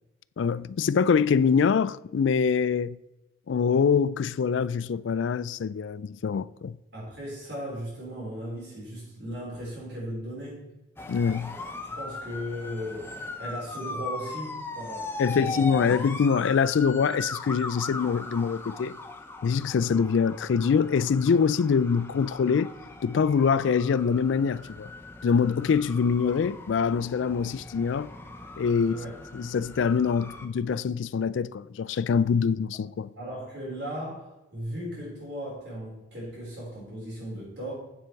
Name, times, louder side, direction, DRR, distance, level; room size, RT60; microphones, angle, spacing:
voice 1, 0.4-3.0 3.5-6.8 11.1-11.6 15.2-19.0 19.4-22.7 23.0-24.9 25.2-28.1 28.6-29.0 29.3-33.1, left 6 dB, 70° left, 0.3 m, -24 dB
voice 2, 6.9-10.6 11.9-13.1 13.4-15.9 28.8-29.1 33.2-37.7, equal, 55° right, 4.0 m, -37 dB
sound 1, 11.0-30.5, left 2 dB, 10° left, 0.6 m, -39 dB
9.4 x 7.6 x 4.6 m
head